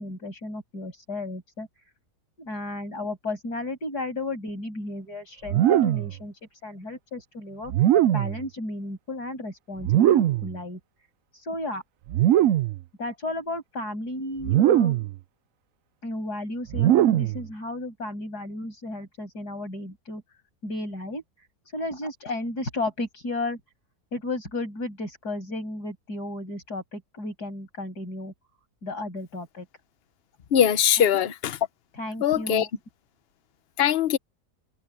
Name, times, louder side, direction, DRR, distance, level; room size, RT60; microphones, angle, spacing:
voice 1, 0.0-1.7 2.4-10.8 11.3-11.8 13.0-15.1 16.0-20.2 20.6-21.5 21.7-23.6 24.1-28.3 28.8-29.7 31.0-31.3 31.9-32.7, left 2 dB, 80° left, 8.2 m, -34 dB
sound 1, 5.5-6.2 7.7-8.4 9.8-10.6 12.1-12.8 14.4-15.2 16.7-17.5, right 12 dB, 65° right, 0.9 m, -20 dB
voice 2, 30.5-31.6 32.2-32.7 33.8-34.2, left 9 dB, 50° left, 0.9 m, -21 dB
omnidirectional pair, 1.7 m